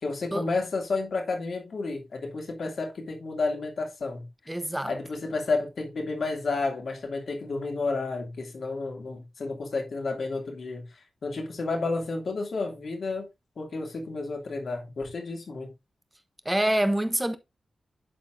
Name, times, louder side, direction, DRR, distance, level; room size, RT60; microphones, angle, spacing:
voice 1, 0.0-4.3 4.9-13.3 13.6-15.7, left 3 dB, 65° left, 2.4 m, -31 dB
voice 2, 4.5-4.9 16.4-17.4, right 1 dB, 10° right, 1.0 m, -26 dB
11.0 x 4.3 x 2.6 m
cardioid pair, 70°, 0 cm